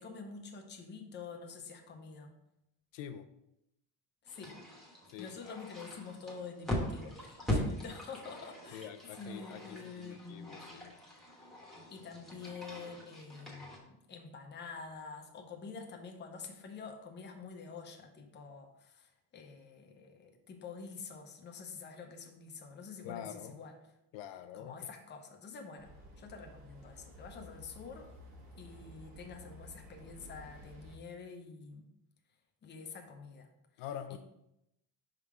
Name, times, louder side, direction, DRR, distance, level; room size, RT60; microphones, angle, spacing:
voice 1, 0.0-2.3 4.2-4.6 5.2-10.6 11.9-23.7 24.5-28.1 28.6-31.9 32.6-33.5 34.1-34.2, left 5 dB, 25° left, 3 dB, 0.7 m, -47 dB
voice 2, 2.9-3.3 5.1-5.6 8.7-10.9 23.0-23.6 24.1-24.7 33.8-34.2, left 9 dB, 80° left, 9 dB, 0.6 m, -45 dB
sound 1, 4.3-13.8, equal, ahead, 1.1 m, -41 dB
sound 2, 25.8-31.0, left 1 dB, 45° right, 1.4 m, -53 dB
5.5 x 3.7 x 4.8 m, 0.84 s
cardioid pair, 165°, 42 cm